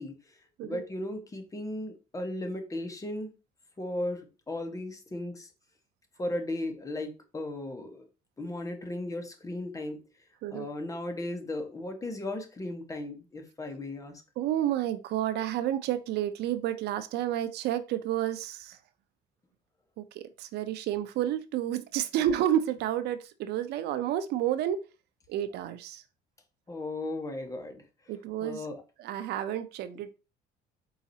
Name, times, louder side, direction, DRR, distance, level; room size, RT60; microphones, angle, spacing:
voice 1, 0.0-3.3 3.8-5.5 6.2-8.1 8.4-10.0 10.5-14.2 26.7-27.8 28.4-28.8, left 1 dB, 20° left, 1.1 m, -36 dB
voice 2, 14.4-18.8 20.0-24.8 25.3-26.0 28.1-28.7 29.0-30.1, right 11 dB, 75° right, 0.5 m, -30 dB
4.7 x 4.0 x 2.7 m
cardioid pair, 110°, 17 cm